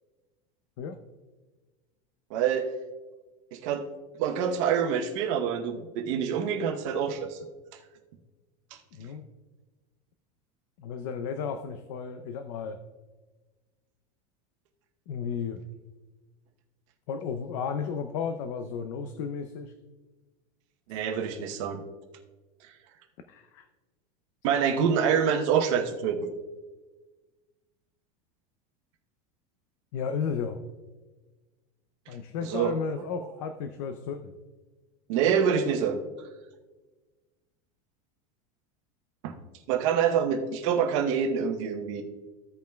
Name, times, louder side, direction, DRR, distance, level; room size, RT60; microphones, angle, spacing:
voice 1, 2.3-2.7 3.5-3.8 4.2-7.4 20.9-21.8 24.4-26.3 32.4-32.7 35.1-36.0 39.2-39.3 39.7-42.0, right 7 dB, 55° right, 4 dB, 0.9 m, -26 dB
voice 2, 8.9-9.3 10.8-12.8 15.1-15.6 17.1-19.7 23.3-23.7 29.9-30.6 32.1-34.3, left 6 dB, 60° left, 8 dB, 0.6 m, -33 dB
15.0 x 5.3 x 2.3 m, 1.3 s
supercardioid pair, 165°, 19 cm